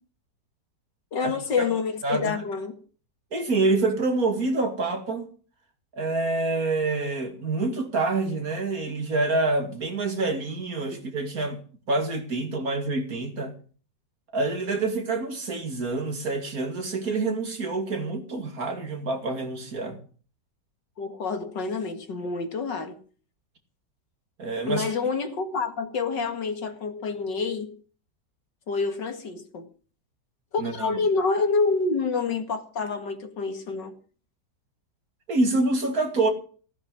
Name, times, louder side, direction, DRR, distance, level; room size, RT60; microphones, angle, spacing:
voice 1, 1.1-2.8 21.0-23.0 24.7-27.8 28.7-29.7 30.5-33.9, left 4 dB, 85° left, 2.7 m, -27 dB
voice 2, 2.0-2.4 3.3-5.3 5.9-13.5 14.3-20.0 24.4-24.9 30.6-31.0 35.3-36.3, right 3 dB, 55° right, 2.9 m, -27 dB
16.0 x 9.5 x 6.2 m
omnidirectional pair, 1.9 m